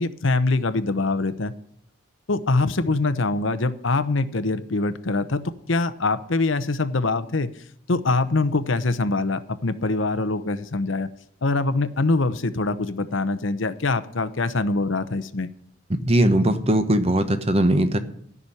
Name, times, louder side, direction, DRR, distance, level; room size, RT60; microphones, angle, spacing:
voice 1, 0.0-1.5 2.3-5.4 5.7-7.5 7.9-11.1 11.4-15.5, left 3 dB, 75° left, 12 dB, 0.9 m, -23 dB
voice 2, 15.9-18.0, right 1 dB, 30° right, 9 dB, 1.1 m, -20 dB
13.5 x 6.2 x 9.9 m, 0.64 s
head